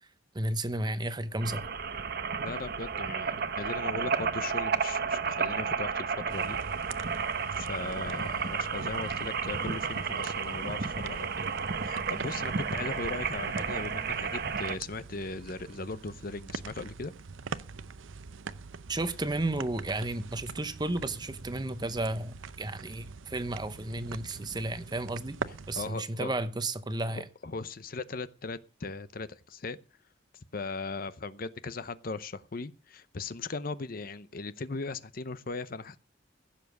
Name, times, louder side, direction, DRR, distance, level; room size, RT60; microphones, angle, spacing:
voice 1, 0.3-1.6 18.9-25.4 25.7-27.2, right 2 dB, 20° right, 0.8 m, -33 dB
sound 1, 1.4-14.8, right 5 dB, 55° right, 0.9 m, -32 dB
voice 2, 2.4-6.6 7.6-11.5 11.8-17.1 25.7-26.3 27.1-29.8 30.5-36.0, left 3 dB, 50° left, 0.7 m, -38 dB
sound 2, 6.3-25.9, right 4 dB, 85° right, 0.7 m, -44 dB
16.0 x 7.2 x 6.5 m
head